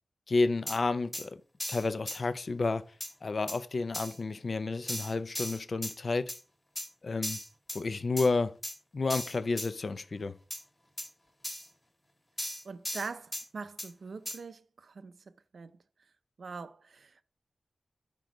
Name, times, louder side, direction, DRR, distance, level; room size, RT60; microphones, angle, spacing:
voice 1, 0.3-1.4 1.7-2.8 3.2-6.3 7.0-7.4 7.7-8.6 8.9-10.4, left 3 dB, 45° left, 0.4 m, -30 dB
sound 1, 0.7-0.8 1.1-1.3 1.6-2.2 3.0-3.1 3.5-3.6 3.9-4.2 4.9-5.9 6.3-6.4 6.8-6.9 7.2-7.8 8.2-8.3 8.6-8.8 9.1-9.7 10.5-10.6 11.0-11.1 11.4-11.7 12.4-13.4 13.8-13.9 14.3-14.4, left 1 dB, 25° left, 1.6 m, -37 dB
voice 2, 12.6-15.7 16.4-17.2, right 4 dB, 60° right, 0.5 m, -43 dB
6.0 x 5.2 x 4.9 m
wide cardioid pair, 145°, 0 cm